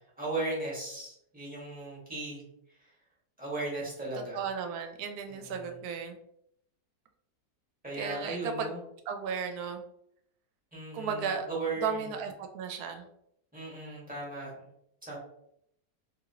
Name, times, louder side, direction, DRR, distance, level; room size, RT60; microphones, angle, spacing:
voice 1, 0.2-2.4 3.4-4.4 5.3-5.7 7.8-8.8 10.7-12.1 13.5-14.7 15.0-15.2, right 2 dB, 5° right, -6 dB, 1.0 m, -37 dB
voice 2, 4.3-6.2 8.0-8.7 9.1-9.8 10.9-11.5 11.8-13.1, right 6 dB, 75° right, 5 dB, 1.0 m, -34 dB
2.9 x 2.7 x 2.7 m, 0.74 s
omnidirectional pair, 1.6 m